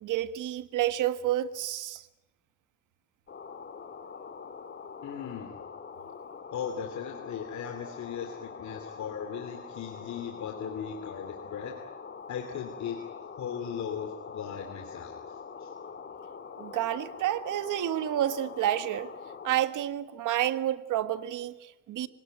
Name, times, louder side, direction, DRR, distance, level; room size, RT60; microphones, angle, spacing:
voice 1, 0.0-2.0 16.6-19.1 19.4-22.1, right 12 dB, 65° right, 1.6 m, -29 dB
sound 1, 3.3-19.5, left 6 dB, 35° left, 2.4 m, -44 dB
voice 2, 5.0-5.5 6.5-11.8 12.3-13.0 13.4-15.2 15.6-15.7, left 8 dB, 55° left, 3.0 m, -37 dB
25.5 x 19.0 x 9.3 m
cardioid pair, 105°, 33 cm